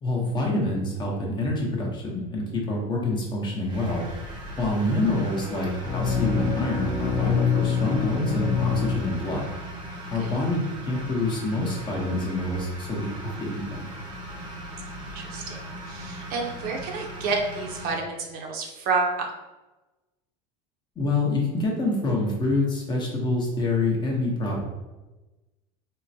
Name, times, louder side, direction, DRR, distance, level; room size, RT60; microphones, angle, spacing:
voice 1, 0.0-4.1 4.6-9.5 10.1-13.9 21.0-24.6, left 2 dB, 25° left, -2 dB, 0.8 m, -26 dB
sound 1, 3.6-17.9, equal, 25° right, 0.8 m, -39 dB
sound 2, 5.8-9.7, left 6 dB, 45° left, 0.5 m, -26 dB
voice 2, 15.1-15.6 15.8-19.3, right 4 dB, 55° right, 0 dB, 0.7 m, -29 dB
3.7 x 2.1 x 2.7 m, 1.1 s
supercardioid pair, 125°, 18 cm